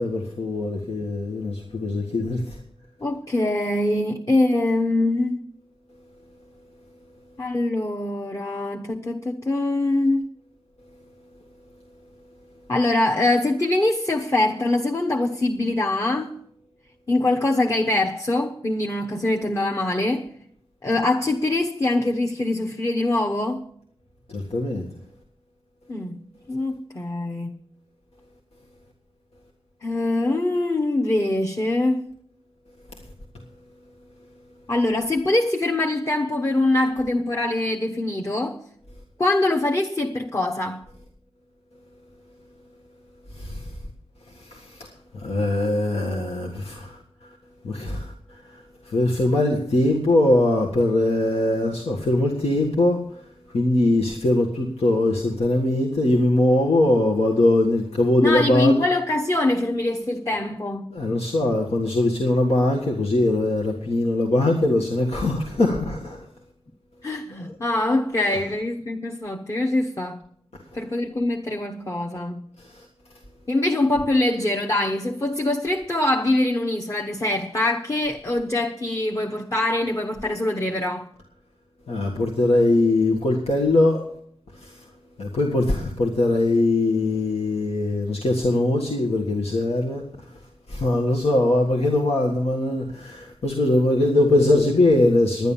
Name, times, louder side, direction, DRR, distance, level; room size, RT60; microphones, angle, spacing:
voice 1, 0.0-2.6 24.3-24.9 43.3-43.8 44.3-44.9 45.1-47.3 47.6-58.8 60.9-66.3 72.6-72.9 81.9-84.0 84.5-84.8 85.2-90.4 90.7-95.5, left 2 dB, 90° left, 1.6 m, -22 dB
voice 2, 3.0-5.4 7.4-10.3 12.7-16.4 17.1-20.3 20.8-23.6 25.9-26.2 26.5-27.5 29.8-32.1 34.7-38.6 39.2-40.8 58.2-60.9 67.0-70.2 70.7-72.4 73.5-81.1, left 2 dB, 30° left, 1.0 m, -23 dB
11.0 x 10.0 x 7.2 m
wide cardioid pair, 70°, 10 cm